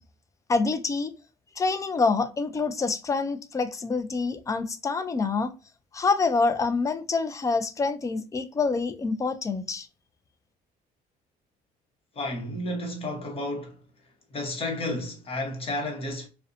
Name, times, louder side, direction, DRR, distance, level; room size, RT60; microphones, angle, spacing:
voice 1, 0.5-1.1 1.6-5.5 5.9-9.9, left 4 dB, 20° left, 0.3 m, -26 dB
voice 2, 12.1-13.8 14.3-16.3, left 1 dB, 35° left, 0.9 m, -32 dB
2.6 x 2.1 x 2.5 m
cardioid pair, 110°, 17 cm